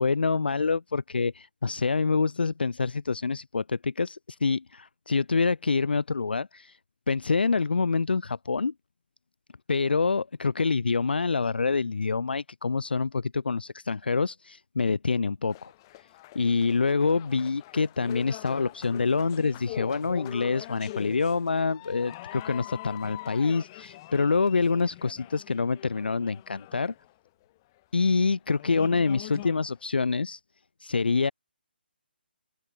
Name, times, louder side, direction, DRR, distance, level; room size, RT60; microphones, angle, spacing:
voice 1, 0.0-6.8 7.1-8.7 9.7-15.7 16.3-26.9 27.9-30.4 30.8-31.3, left 4 dB, 65° left, 0.3 m, -26 dB
sound 1, 15.5-27.4 28.2-28.3 28.6-29.8, left 18 dB, 25° left, 1.1 m, -44 dB
open air
figure-of-eight pair, 140°, 6 cm